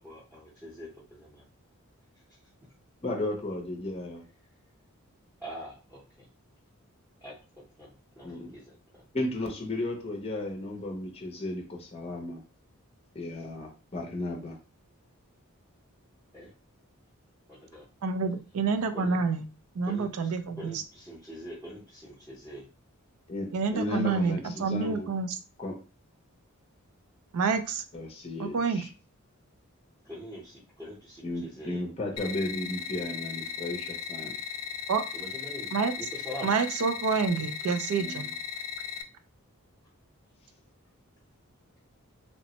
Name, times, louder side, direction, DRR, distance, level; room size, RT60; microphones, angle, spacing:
voice 1, 0.0-1.4 2.3-2.4 5.4-6.3 7.2-7.3 7.8-9.0 16.3-16.5 17.5-17.8 18.9-19.2 19.8-22.7 24.2-24.3 30.0-31.8 35.1-35.7 36.0-36.5, equal, 10° right, -7 dB, 0.7 m, -44 dB
voice 2, 3.0-4.2 8.2-8.5 9.1-12.4 13.1-14.6 23.3-25.1 25.6-25.7 27.9-28.9 31.2-34.4 38.0-38.3, left 2 dB, 25° left, 1 dB, 0.5 m, -34 dB
voice 3, 18.0-19.4 19.7-20.8 23.5-25.4 27.3-27.8 28.4-28.8 34.9-35.0 35.7-35.9 36.4-38.3, right 5 dB, 90° right, 8 dB, 0.4 m, -28 dB
sound 1, 32.2-39.0, left 7 dB, 80° left, 0.4 m, -37 dB
3.0 x 2.0 x 2.8 m, 0.34 s
head